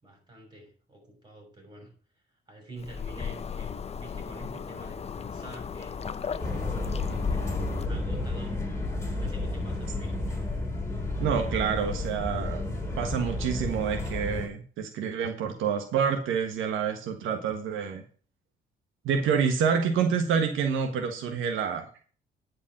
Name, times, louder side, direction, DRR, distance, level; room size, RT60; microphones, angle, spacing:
voice 1, 0.0-7.4 7.9-8.6 9.1-10.3, right 2 dB, 20° right, 2 dB, 6.5 m, -47 dB
sound 1, 2.8-7.9, left 6 dB, 30° left, 0.6 m, -37 dB
sound 2, 6.4-14.5, left 2 dB, 15° left, 3.6 m, -31 dB
voice 2, 11.2-18.0 19.0-21.9, right 7 dB, 85° right, 5 dB, 1.4 m, -28 dB
10.0 x 5.3 x 7.6 m, 0.42 s
cardioid pair, 90°, 20 cm